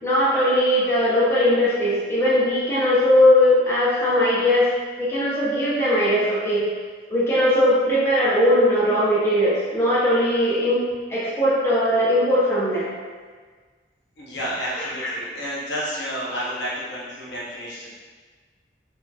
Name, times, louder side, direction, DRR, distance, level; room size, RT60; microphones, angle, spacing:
voice 1, 0.0-4.7 5.0-6.6 7.1-10.8 11.1-12.9 14.7-15.3, left 1 dB, 15° left, -9 dB, 0.6 m, -19 dB
voice 2, 14.2-18.0, equal, 70° left, -7 dB, 0.7 m, -30 dB
2.7 x 2.4 x 2.2 m, 1.5 s
head